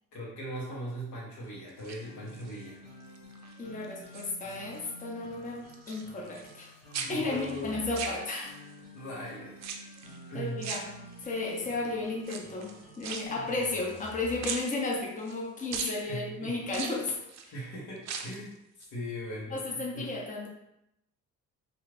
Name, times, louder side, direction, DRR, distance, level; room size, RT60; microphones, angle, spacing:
voice 1, 0.1-2.8 7.0-7.9 8.9-9.6 10.3-10.7 16.1-16.6 17.5-20.1, equal, 85° left, -4 dB, 1.0 m, -39 dB
sound 1, 1.7-2.7 3.1-3.5 3.8-4.9 5.1-6.7 6.9-8.7 9.6-10.2 10.6-11.5 12.2-14.1 14.4-15.4 15.7-16.0 16.7-17.5 18.0-18.5 18.8-18.9, right 6 dB, 60° right, 0.4 m, -40 dB
sound 2, 1.8-14.7, left 1 dB, 45° left, 1.0 m, -50 dB
voice 2, 3.6-6.7 7.1-8.5 10.3-10.9 11.2-17.1 17.4-17.5 19.5-20.5, left 3 dB, 25° left, -2 dB, 0.7 m, -34 dB
2.5 x 2.4 x 3.2 m, 0.83 s
cardioid pair, 90°, 30 cm